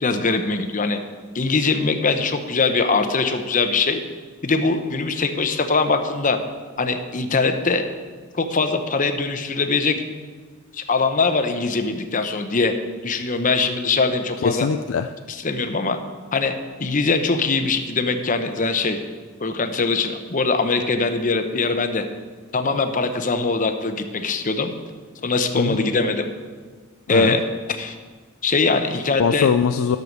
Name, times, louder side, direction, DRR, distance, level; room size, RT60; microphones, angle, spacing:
voice 1, 0.0-1.0 1.3-4.0 4.4-6.4 6.8-7.8 8.3-10.0 10.7-12.7 13.0-14.7 15.3-16.0 16.3-16.5 16.8-19.0 19.4-22.0 22.5-24.7 25.2-26.3 27.1-27.4 27.7-27.9 28.4-29.5, left 4 dB, 40° left, 7 dB, 0.8 m, -22 dB
voice 2, 14.4-15.1 25.5-25.9 27.1-27.4 29.2-30.0, left 6 dB, 75° left, 7 dB, 0.4 m, -21 dB
11.0 x 6.6 x 6.6 m, 1.5 s
head